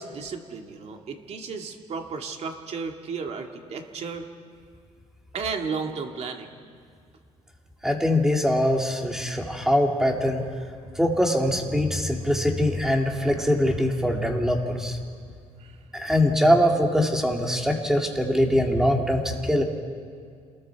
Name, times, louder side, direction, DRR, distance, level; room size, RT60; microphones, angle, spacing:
voice 1, 0.0-4.3 5.3-6.5 15.6-15.7, right 5 dB, 55° right, 3 dB, 2.1 m, -33 dB
voice 2, 7.8-10.4 11.0-15.0 15.9-19.6, equal, 5° right, 1 dB, 2.3 m, -22 dB
28.5 x 20.5 x 4.6 m, 2.2 s
cardioid pair, 125°, 13 cm